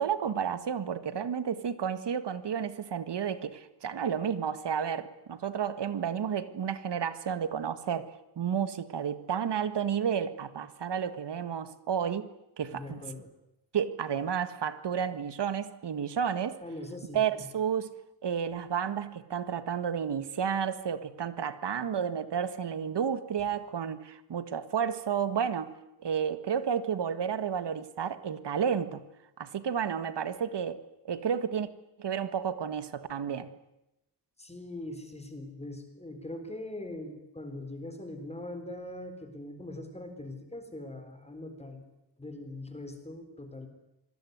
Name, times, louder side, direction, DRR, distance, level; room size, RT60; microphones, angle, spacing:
voice 1, 0.0-12.3 12.6-13.0 13.7-16.6 17.1-17.9 18.2-25.7 26.0-29.0 29.4-31.7 32.0-33.5, right 7 dB, 75° right, 13 dB, 1.9 m, -31 dB
voice 2, 12.7-13.3 16.6-17.5 34.4-41.9 42.2-43.7, left 1 dB, 15° left, 7 dB, 4.0 m, -41 dB
26.5 x 20.5 x 9.6 m, 0.90 s
wide cardioid pair, 155°, 41 cm